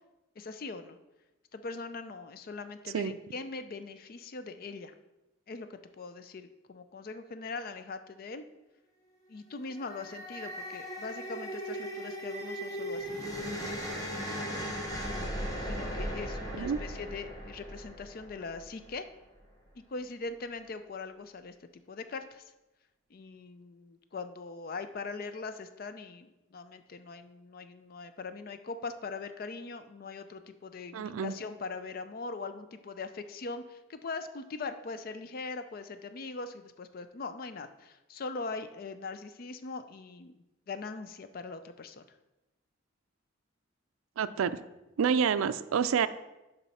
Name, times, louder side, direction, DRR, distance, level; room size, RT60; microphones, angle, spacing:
voice 1, 0.4-1.0 1.5-4.9 5.5-8.5 9.3-14.7 15.1-15.2 15.7-19.1 19.7-21.5 21.9-22.4 23.1-42.0, left 4 dB, 45° left, 10 dB, 0.4 m, -41 dB
sound 1, 9.6-18.9, equal, 15° left, 1.0 m, -38 dB
voice 2, 30.9-31.3 44.2-44.6 45.0-46.1, right 7 dB, 90° right, 14 dB, 0.4 m, -28 dB
7.0 x 5.4 x 4.2 m, 1.0 s
head